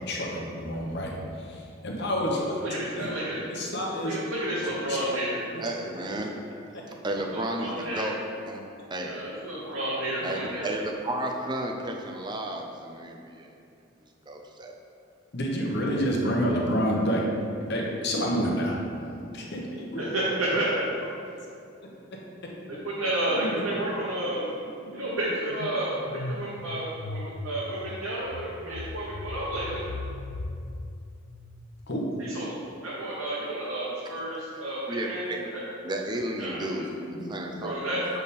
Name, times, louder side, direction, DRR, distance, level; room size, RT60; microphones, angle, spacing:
voice 1, 0.1-1.1 1.5-2.6 3.0-3.1 3.5-4.2 4.9-5.0 6.0-6.1 6.7-6.8 15.3-17.3 17.7-18.8 19.3-20.1 20.5-20.6 21.8-21.9 23.4-23.6 31.9-32.0 37.2-37.7, equal, 55° left, -2 dB, 0.9 m, -28 dB
voice 2, 2.6-3.5 4.0-5.4 7.2-8.1 9.1-10.7 20.1-20.7 22.7-24.5 24.9-25.9 26.3-29.8 32.2-32.5 32.8-35.6 36.4-36.9 37.6-38.2, right 1 dB, 90° right, -8 dB, 1.1 m, -31 dB
voice 3, 5.6-6.3 7.0-8.2 8.4-8.6 8.9-9.2 10.2-13.5 14.3-14.7 34.9-35.5 35.8-37.8, right 1 dB, 20° right, 1 dB, 0.5 m, -33 dB
sound 1, 22.5-22.8 23.1-31.9, left 2 dB, 75° left, 0.4 m, -39 dB
6.8 x 3.6 x 4.1 m, 2.5 s
head